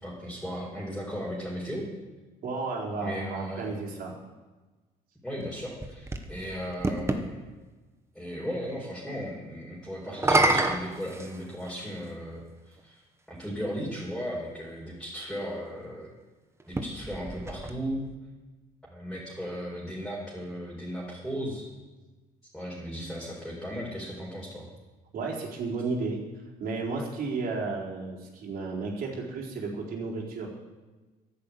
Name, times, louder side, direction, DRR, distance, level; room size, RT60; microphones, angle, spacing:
voice 1, 0.0-1.9 3.0-3.7 5.2-7.5 8.1-13.0 13.3-16.1 16.7-18.0 18.9-21.6 22.5-24.7, equal, ahead, -6 dB, 4.4 m, -36 dB
voice 2, 2.4-4.1 25.1-26.2 26.6-30.5, right 3 dB, 60° right, -2 dB, 4.4 m, -33 dB
sound 1, 5.4-7.3 10.1-11.9 12.8-12.9 16.6-18.2, right 2 dB, 15° right, 1.4 m, -28 dB
11.5 x 10.5 x 8.6 m, 1.2 s
cardioid pair, 110°, 17 cm